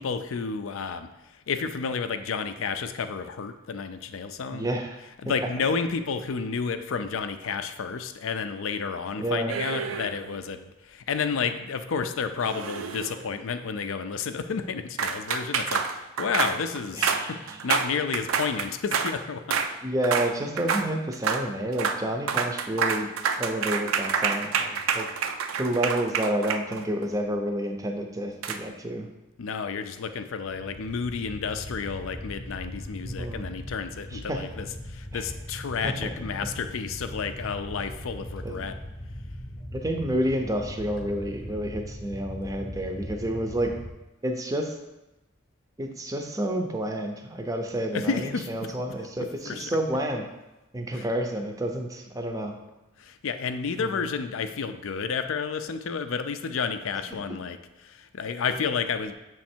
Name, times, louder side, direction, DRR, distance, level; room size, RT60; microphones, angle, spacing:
voice 1, 0.0-4.7 5.2-17.4 17.6-19.6 29.4-38.7 47.9-48.5 49.2-50.0 50.9-51.0 53.0-59.1, left 5 dB, 75° left, 9 dB, 0.4 m, -31 dB
voice 2, 4.5-5.0 9.2-9.5 16.9-17.6 19.8-23.1 23.4-25.1 25.6-29.1 33.0-33.4 34.1-34.4 35.1-35.2 35.8-36.1 38.4-38.6 39.7-43.7 44.2-44.8 45.8-50.3 50.7-52.6 53.8-54.0, right 1 dB, 15° right, 4 dB, 0.5 m, -29 dB
sound 1, 9.5-10.3 12.4-13.3 15.0-19.2 19.5-19.7 20.0-20.3 20.6-20.9 21.1-21.4 21.7-22.0 22.3-27.0 28.4-28.6, right 6 dB, 80° right, 0.4 m, -28 dB
sound 2, 30.5-43.9, equal, 20° left, 0.7 m, -39 dB
7.2 x 3.2 x 4.4 m, 0.99 s
head